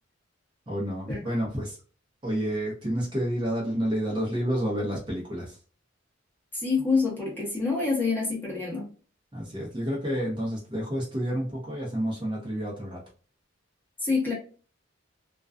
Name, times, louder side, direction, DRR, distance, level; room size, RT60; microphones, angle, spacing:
voice 1, 0.7-1.8 2.2-5.6 9.3-13.0, equal, 25° right, -3 dB, 0.7 m, -29 dB
voice 2, 6.5-8.9 14.0-14.3, left 4 dB, 10° left, -4 dB, 0.8 m, -26 dB
2.4 x 2.2 x 2.4 m, 0.38 s
head